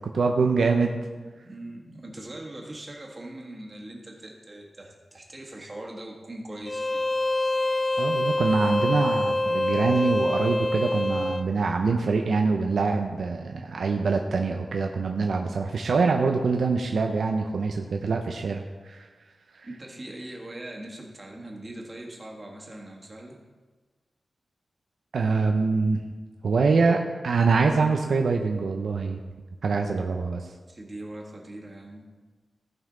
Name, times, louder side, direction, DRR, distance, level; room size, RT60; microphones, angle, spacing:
voice 1, 0.1-1.0 8.0-19.1 25.1-26.0 26.4-29.2 29.6-30.5, right 4 dB, 75° right, 3 dB, 0.7 m, -24 dB
voice 2, 1.1-7.1 9.7-10.1 19.6-23.4 30.7-32.1, right 1 dB, 25° right, -1 dB, 1.6 m, -41 dB
Bowed string instrument, 6.6-11.5, left 2 dB, 30° left, 0.4 m, -25 dB
16.0 x 5.5 x 3.8 m, 1.3 s
wide cardioid pair, 155°, 0 cm